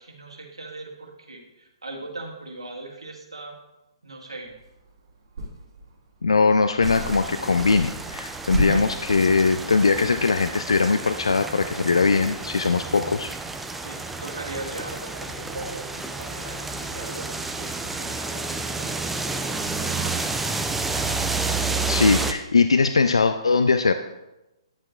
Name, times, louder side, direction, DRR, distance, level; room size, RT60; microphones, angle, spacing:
voice 1, 0.0-3.5 4.0-4.5 8.4-8.8 12.9-13.1 13.8-20.2, right 2 dB, 75° right, 0 dB, 1.7 m, -39 dB
sound 1, 4.7-4.8 5.4-5.9 6.5-7.3 7.6-9.6, right 1 dB, 50° right, 2.6 m, -31 dB
voice 2, 6.2-13.3 21.9-23.9, left 4 dB, 75° left, 9 dB, 0.4 m, -21 dB
sound 2, 6.8-22.3, right 3 dB, 5° right, 0.4 m, -30 dB
10.0 x 7.4 x 2.3 m, 0.99 s
figure-of-eight pair, 125°, 3 cm